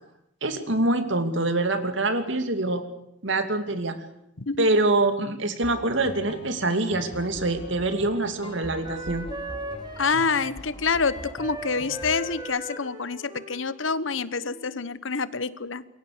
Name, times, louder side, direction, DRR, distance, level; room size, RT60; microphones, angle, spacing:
voice 1, 0.4-2.8 3.2-4.0 4.6-9.3, right 2 dB, 70° right, 8 dB, 2.6 m, -25 dB
sound 1, 5.6-12.4, equal, 30° left, 3.0 m, -42 dB
Wind instrument woodwind instrument, 6.9-14.9, right 1 dB, 20° right, 2.9 m, -40 dB
voice 2, 10.0-15.8, left 4 dB, 80° left, 16 dB, 1.1 m, -27 dB
28.0 x 22.5 x 6.8 m, 0.79 s
head